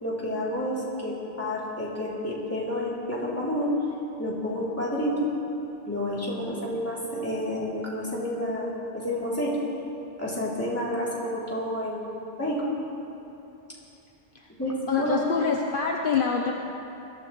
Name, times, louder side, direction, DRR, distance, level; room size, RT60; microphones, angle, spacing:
voice 1, 0.0-3.7 4.2-5.3 5.9-9.6 10.2-12.1 12.4-12.8 14.6-15.2, left 1 dB, 15° left, -7 dB, 2.9 m, -29 dB
voice 2, 14.9-16.5, left 5 dB, 60° left, 1 dB, 0.9 m, -26 dB
21.0 x 13.0 x 3.0 m, 2.9 s
omnidirectional pair, 1.0 m